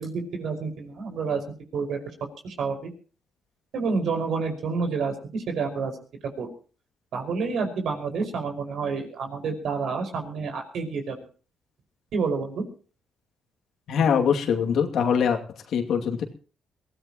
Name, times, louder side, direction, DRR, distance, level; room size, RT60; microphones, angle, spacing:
voice 1, 0.0-1.4 1.7-2.0 2.4-2.9 3.7-5.9 6.4-6.5 7.1-11.2 12.1-12.6, right 4 dB, 70° right, 4 dB, 5.4 m, -29 dB
voice 2, 13.9-15.4 15.7-16.2, left 7 dB, 70° left, 4 dB, 2.5 m, -23 dB
23.0 x 16.5 x 3.0 m, 0.39 s
cardioid pair, 90°, 0 cm